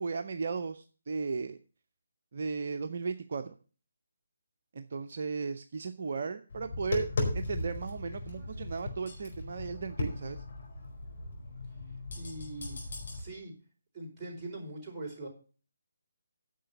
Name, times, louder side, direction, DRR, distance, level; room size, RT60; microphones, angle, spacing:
voice 1, 0.0-1.6 2.3-3.5 4.7-7.1 7.3-10.4, right 4 dB, 50° right, 7 dB, 0.6 m, -35 dB
Tap, 6.5-13.2, left 2 dB, 55° left, 4.6 m, -37 dB
voice 2, 12.1-12.8 13.1-13.5 13.9-15.3, right 2 dB, 15° right, -6 dB, 4.6 m, -42 dB
10.0 x 6.7 x 6.7 m, 0.37 s
figure-of-eight pair, 150°, 0 cm